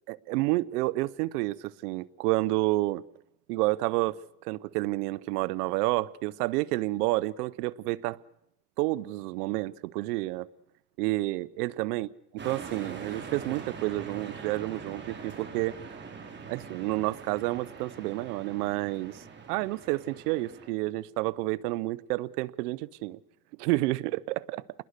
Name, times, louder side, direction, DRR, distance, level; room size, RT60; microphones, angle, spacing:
voice 1, 0.1-3.0 3.5-4.2 4.4-8.2 8.8-10.5 11.0-12.1 12.4-15.8 16.5-19.2 19.5-23.2 23.6-24.6, right 19 dB, 90° right, 0.9 m, -29 dB
sound 1, 12.4-20.7, right 5 dB, 25° right, 4.9 m, -43 dB
28.0 x 21.0 x 6.6 m
supercardioid pair, 120°, 45 cm